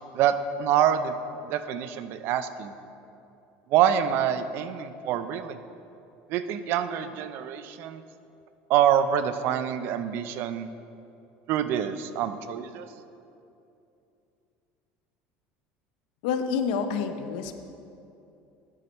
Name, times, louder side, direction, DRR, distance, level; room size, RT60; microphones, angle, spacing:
voice 1, 0.1-1.1 1.4-2.7 3.7-5.6 6.3-8.0 8.7-10.7 11.5-12.9, right 9 dB, 55° right, 11 dB, 0.4 m, -26 dB
voice 2, 16.2-17.5, left 6 dB, 90° left, 8 dB, 0.6 m, -28 dB
9.8 x 4.4 x 5.2 m, 2.7 s
cardioid pair, 150°, 5 cm